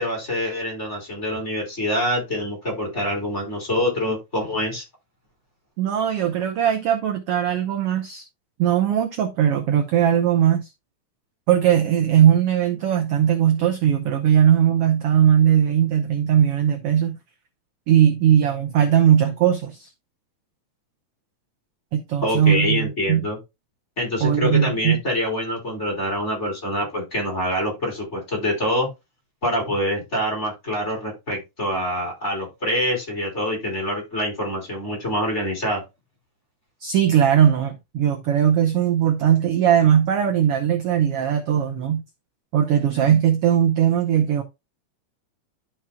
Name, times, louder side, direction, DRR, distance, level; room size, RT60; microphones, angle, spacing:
voice 1, 0.0-4.8 22.2-23.4 24.0-28.9 29.4-35.8, left 1 dB, 20° left, 4.4 m, -25 dB
voice 2, 5.8-8.2 8.6-10.7 11.5-17.2 17.9-19.9 21.9-23.2 24.2-25.0 36.8-42.0 42.5-44.4, right 9 dB, 65° right, 1.6 m, -19 dB
12.0 x 5.8 x 2.3 m
omnidirectional pair, 3.4 m